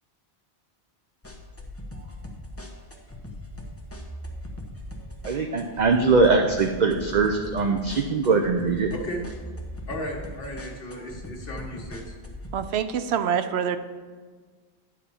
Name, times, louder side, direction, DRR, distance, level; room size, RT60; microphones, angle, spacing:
sound 1, 1.2-12.6, left 1 dB, 15° left, 1.0 m, -40 dB
voice 1, 5.2-8.9, right 4 dB, 50° right, 3 dB, 0.6 m, -21 dB
voice 2, 8.9-9.2 9.9-12.1, equal, 60° left, -1 dB, 1.6 m, -35 dB
voice 3, 12.5-13.8, right 8 dB, 75° right, 10 dB, 0.9 m, -25 dB
10.0 x 4.2 x 6.9 m, 1.5 s
omnidirectional pair, 1.1 m